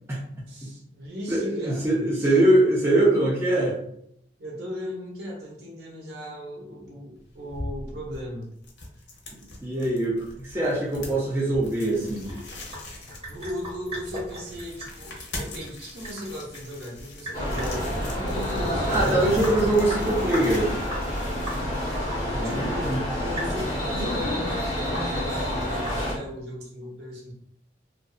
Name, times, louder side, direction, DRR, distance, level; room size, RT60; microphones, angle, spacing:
voice 1, 0.5-2.4 4.4-8.5 13.3-18.2 22.4-27.3, equal, 65° right, -3 dB, 0.9 m, -37 dB
voice 2, 1.3-3.8 9.3-12.3 18.8-20.7 22.3-23.0, right 1 dB, 15° right, -6 dB, 0.5 m, -23 dB
sound 1, 7.2-22.3, left 2 dB, 85° left, 0.7 m, -42 dB
Sink (filling or washing) / Drip, 11.9-26.4, equal, 35° right, 1.3 m, -40 dB
sound 2, 17.3-26.1, equal, 25° left, 1.0 m, -28 dB
2.6 x 2.3 x 2.3 m, 0.71 s
head